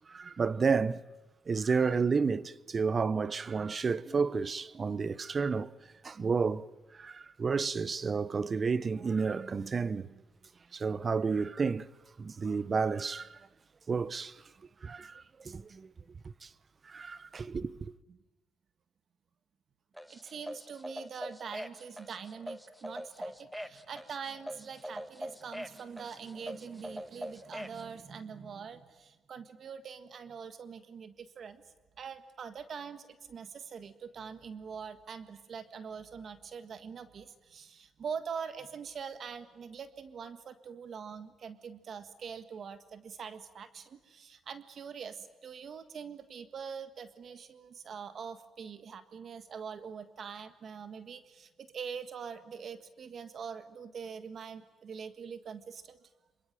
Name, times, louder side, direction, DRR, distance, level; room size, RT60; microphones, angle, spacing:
voice 1, 0.1-1.0 1.5-5.7 6.0-10.1 10.7-11.9 12.2-13.5 13.9-14.4 14.8-15.9 16.2-16.5 16.8-17.9, right 5 dB, 40° right, 0.9 m, -31 dB
sound 1, 20.0-27.8, equal, ahead, 1.4 m, -42 dB
voice 2, 20.1-31.6 32.0-56.0, right 6 dB, 55° right, 1.7 m, -44 dB
27.0 x 24.0 x 9.2 m
cardioid pair, 90°, 0 cm